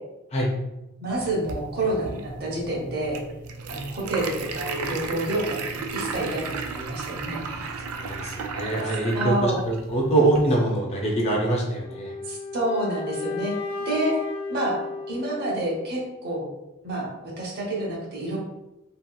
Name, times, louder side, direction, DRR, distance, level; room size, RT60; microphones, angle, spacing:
voice 1, 1.0-3.2 3.7-7.7 9.1-9.6 12.3-13.6 13.8-14.1 14.5-14.8 15.1-16.5 16.8-18.4, right 1 dB, 50° right, -3 dB, 0.7 m, -28 dB
sound 1, 1.1-10.6, right 4 dB, 80° right, 0.3 m, -34 dB
voice 2, 7.4-12.1, right 2 dB, 30° left, -1 dB, 0.5 m, -24 dB
sound 2, 11.8-15.8, left 4 dB, 80° left, 0.5 m, -34 dB
2.7 x 2.4 x 2.2 m, 0.96 s
head